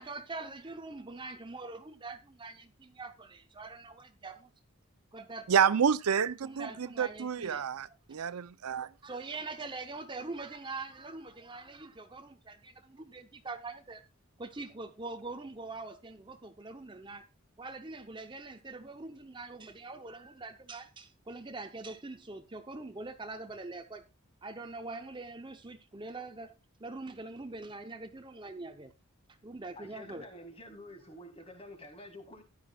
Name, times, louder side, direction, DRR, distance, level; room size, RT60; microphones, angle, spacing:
voice 1, 0.0-4.5 5.1-5.8 6.4-7.6 8.1-8.2 9.0-14.0 14.4-17.3 17.6-24.0 24.4-26.5 26.8-28.9 29.4-30.2, right 3 dB, 20° right, 0.7 m, -43 dB
voice 2, 5.5-8.9, right 7 dB, 90° right, 0.5 m, -29 dB
voice 3, 29.8-32.4, left 1 dB, 25° left, 2.0 m, -49 dB
15.0 x 10.5 x 2.3 m
head